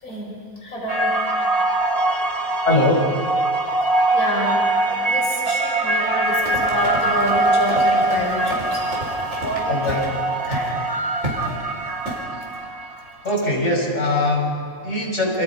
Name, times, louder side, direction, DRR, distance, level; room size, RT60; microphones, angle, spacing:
voice 1, 0.0-1.2 4.1-8.8 9.4-9.8 10.5-10.7, equal, 90° left, -3 dB, 6.4 m, -27 dB
sound 1, 0.9-13.2, right 2 dB, 30° right, 1.3 m, -22 dB
voice 2, 2.6-3.1 9.7-10.0 13.2-15.4, left 2 dB, 55° left, -1 dB, 5.4 m, -21 dB
Run, 6.2-10.2 10.5-10.7 11.2-11.5 12.1-12.2, right 1 dB, 65° right, 5.7 m, -32 dB
29.0 x 27.5 x 5.6 m, 2.2 s
omnidirectional pair, 1.5 m